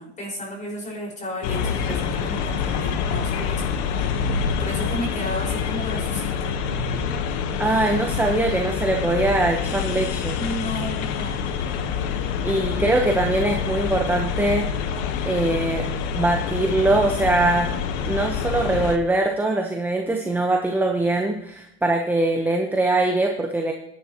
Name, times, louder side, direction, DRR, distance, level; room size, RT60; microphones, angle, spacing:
voice 1, 0.0-3.6 3.9-4.1 4.6-6.5 10.4-11.5, equal, 25° left, -1 dB, 5.4 m, -33 dB
sound 1, 1.4-19.0, left 6 dB, 75° left, 1.4 m, -26 dB
voice 2, 7.6-10.4 12.4-14.7 15.2-15.9 16.1-17.7 18.0-23.7, right 2 dB, 5° right, 2 dB, 1.0 m, -22 dB
18.0 x 10.5 x 3.0 m, 0.77 s
supercardioid pair, 125°, 33 cm